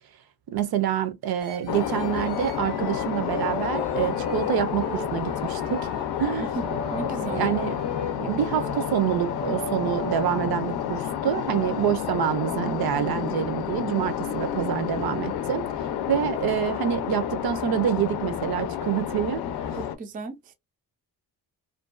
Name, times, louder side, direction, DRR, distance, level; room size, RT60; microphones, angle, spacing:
voice 1, 0.5-5.9 6.2-6.5 7.3-7.7 8.2-15.6 16.1-19.4, right 10 dB, 70° right, 0.6 m, -26 dB
sound 1, 1.4-10.7, equal, 90° right, 1.1 m, -37 dB
sound 2, 1.7-20.0, left 9 dB, 80° left, 0.5 m, -30 dB
voice 2, 6.5-7.5 19.8-20.5, right 3 dB, 25° right, 0.3 m, -35 dB
2.5 x 2.2 x 2.3 m
wide cardioid pair, 175°, 38 cm